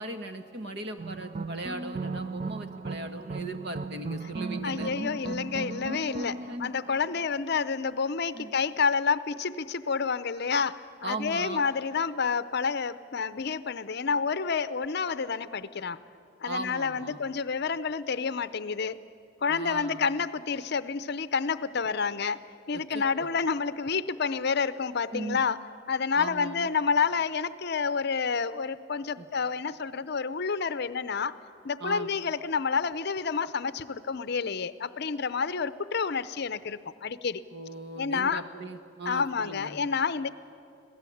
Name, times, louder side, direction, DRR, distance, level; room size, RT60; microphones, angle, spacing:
voice 1, 0.0-5.2 6.5-6.7 8.3-8.5 11.0-11.6 16.5-17.2 19.5-20.1 22.7-23.3 25.1-25.4 26.2-26.7 29.2-29.3 31.8-32.1 37.5-39.8, right 2 dB, 55° right, 7 dB, 1.5 m, -38 dB
sound 1, 1.0-7.6, right 3 dB, 35° right, 0.5 m, -37 dB
voice 2, 4.6-16.0 16.4-19.0 19.4-22.4 22.7-25.6 25.9-31.4 31.6-37.4 38.0-38.4 39.1-40.3, left 5 dB, 55° left, 14 dB, 0.6 m, -29 dB
26.0 x 17.5 x 8.5 m, 2.5 s
head